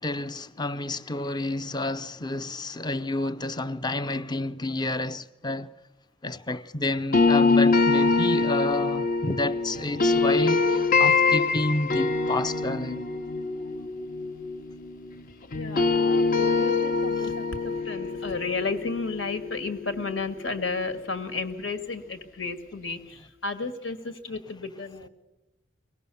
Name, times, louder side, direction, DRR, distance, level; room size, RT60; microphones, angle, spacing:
voice 1, 0.0-5.7 6.2-13.0 17.2-17.3, left 2 dB, 20° left, 0.6 m, -30 dB
sound 1, 7.1-15.2 15.5-20.5, left 4 dB, 50° left, 1.2 m, -24 dB
voice 2, 15.5-25.1, left 4 dB, 75° left, 2.0 m, -33 dB
24.0 x 18.0 x 7.0 m
head